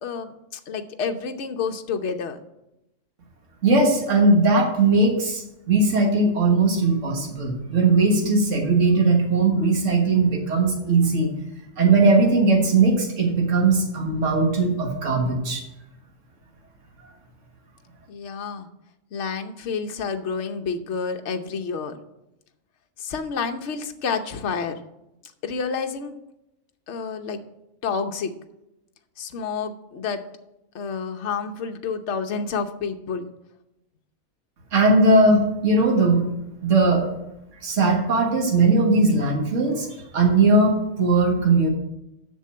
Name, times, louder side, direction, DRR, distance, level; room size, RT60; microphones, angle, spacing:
voice 1, 0.0-2.4 18.1-18.7 19.1-21.9 23.0-24.7 25.4-26.1 26.9-27.4 27.8-28.3 29.2-30.2 30.7-33.3, left 5 dB, 60° left, 5 dB, 1.1 m, -29 dB
voice 2, 3.6-11.3 11.8-15.6 34.7-36.3 36.6-37.1 37.6-41.7, right 3 dB, 60° right, 1 dB, 1.9 m, -19 dB
7.5 x 6.4 x 7.5 m, 0.88 s
omnidirectional pair, 1.4 m